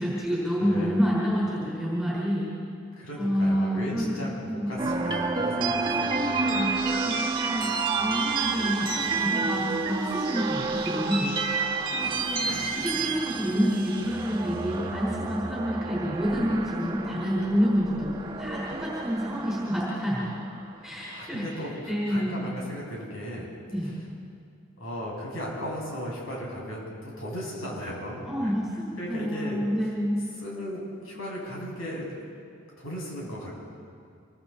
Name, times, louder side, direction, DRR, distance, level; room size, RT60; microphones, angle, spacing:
voice 1, 0.0-2.5 3.2-4.7 5.6-7.7 8.0-11.4 11.9-20.4 20.8-22.4 23.7-23.9 28.3-30.2, equal, ahead, -7 dB, 4.8 m, -28 dB
voice 2, 0.6-1.0 2.9-6.7 12.4-12.7 20.8-23.5 23.8-23.9 24.8-28.5 29.0-29.6 30.4-32.1 32.8-33.5, equal, 75° left, -3 dB, 7.5 m, -36 dB
sound 1, 4.8-21.0, right 4 dB, 25° right, 1.6 m, -30 dB
27.0 x 24.0 x 4.4 m, 2.3 s
head